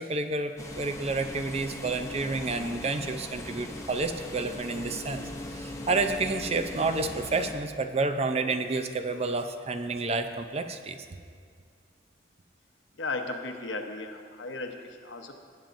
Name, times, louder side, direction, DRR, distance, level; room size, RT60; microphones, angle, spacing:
voice 1, 0.0-11.1, right 3 dB, 35° right, 8 dB, 0.5 m, -30 dB
sound 1, 0.6-7.5, left 1 dB, 15° left, 0.8 m, -39 dB
voice 2, 13.0-15.3, left 3 dB, 80° left, 4 dB, 1.0 m, -35 dB
19.0 x 8.9 x 2.6 m, 2.1 s
head